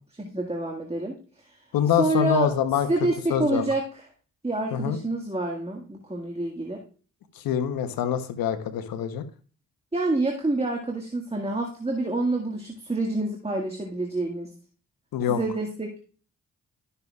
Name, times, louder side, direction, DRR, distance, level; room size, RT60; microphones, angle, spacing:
voice 1, 0.1-1.6 2.0-2.5 2.9-4.0 4.4-6.8 9.9-14.5 15.3-15.9, right 2 dB, 20° right, 1 dB, 1.8 m, -27 dB
voice 2, 1.7-2.9 3.3-3.6 4.7-5.0 7.4-9.2 15.1-15.4, left 9 dB, 85° left, 10 dB, 0.9 m, -25 dB
12.5 x 6.7 x 2.4 m, 0.39 s
supercardioid pair, 45°, 34 cm